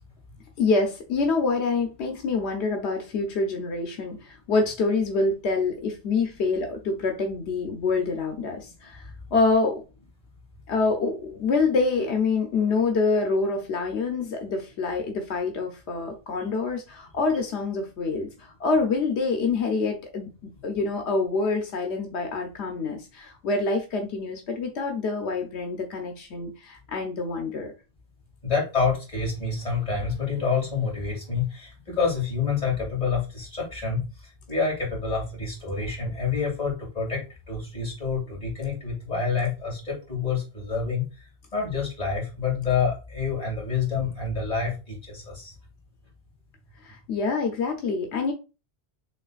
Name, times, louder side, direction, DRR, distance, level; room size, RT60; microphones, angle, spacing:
voice 1, 0.6-9.0 9.3-9.8 10.7-27.7 46.8-48.3, left 4 dB, 85° left, 1.1 m, -26 dB
voice 2, 28.4-41.0 41.5-45.5, left 5 dB, 35° left, 2.5 m, -28 dB
6.9 x 3.1 x 2.4 m
omnidirectional pair, 1.1 m